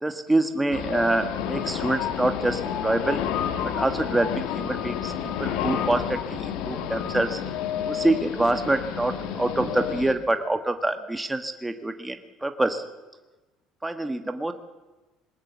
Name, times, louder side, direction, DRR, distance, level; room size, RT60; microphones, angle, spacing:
voice 1, 0.0-3.2 3.7-7.4 7.8-12.8 13.8-14.5, right 2 dB, 10° right, 7 dB, 1.5 m, -26 dB
sound 1, 0.7-10.1, left 9 dB, 75° left, 2.0 m, -30 dB
21.0 x 18.5 x 7.4 m, 1.1 s
supercardioid pair, 95°, 0 cm